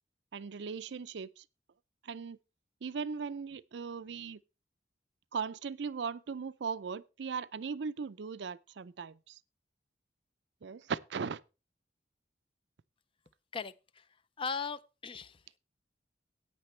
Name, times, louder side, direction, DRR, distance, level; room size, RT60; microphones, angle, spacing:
voice 1, 0.3-1.4 2.0-2.4 2.8-4.4 5.3-9.4 10.6-11.4, right 5 dB, 70° right, 0.5 m, -38 dB
voice 2, 13.5-14.1 14.4-15.4, left 5 dB, 30° left, 0.4 m, -38 dB
14.5 x 9.0 x 3.2 m
head